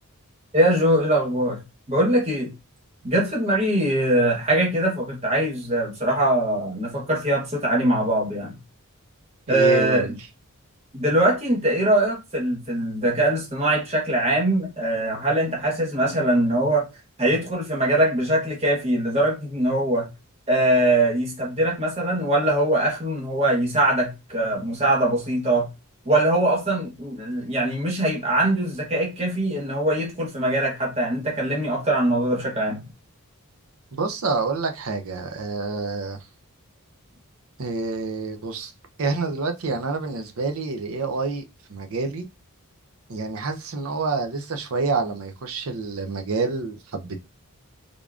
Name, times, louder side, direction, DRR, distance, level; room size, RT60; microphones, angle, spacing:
voice 1, 0.5-1.6 1.9-2.5 3.0-8.5 9.5-10.2 10.9-16.9 17.2-20.1 20.5-25.7 26.0-32.8, right 1 dB, 30° right, 1.1 m, -22 dB
voice 2, 9.5-10.1 33.9-36.2 37.6-38.7 39.0-41.4 41.7-42.3 43.1-47.2, right 4 dB, 65° right, 0.6 m, -27 dB
3.6 x 3.4 x 2.4 m
head